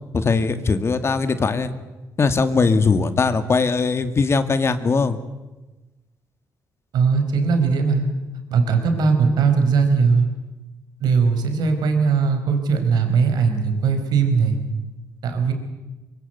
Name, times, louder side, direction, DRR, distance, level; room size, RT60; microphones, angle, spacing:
voice 1, 0.1-1.7 2.2-5.2, left 4 dB, 40° left, 10 dB, 2.2 m, -20 dB
voice 2, 6.9-8.0 8.5-10.2 11.0-14.6 15.2-15.5, right 5 dB, 75° right, 6 dB, 4.9 m, -19 dB
24.0 x 23.5 x 8.2 m, 1.1 s
cardioid pair, 85°, 7 cm